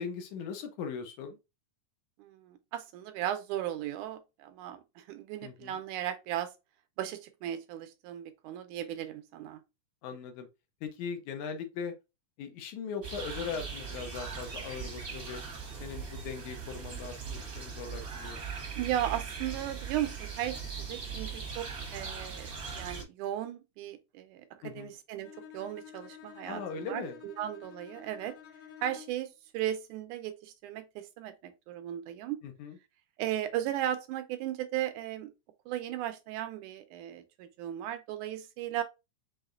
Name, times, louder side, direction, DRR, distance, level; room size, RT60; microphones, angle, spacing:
voice 1, 0.0-1.4 5.4-5.8 10.0-10.5 10.8-11.9 12.4-15.4 15.8-18.5 24.6-24.9 26.5-27.2 32.4-32.8, left 6 dB, 75° left, 2.2 m, -39 dB
voice 2, 2.2-6.5 7.0-9.6 18.8-28.3 28.8-29.3 29.5-32.4 33.2-35.3 35.7-38.8, right 12 dB, 80° right, 2.1 m, -36 dB
sound 1, 13.0-23.0, right 5 dB, 50° right, 1.1 m, -40 dB
Bowed string instrument, 25.2-29.3, left 9 dB, 55° left, 2.0 m, -51 dB
5.6 x 3.5 x 2.5 m
omnidirectional pair, 3.6 m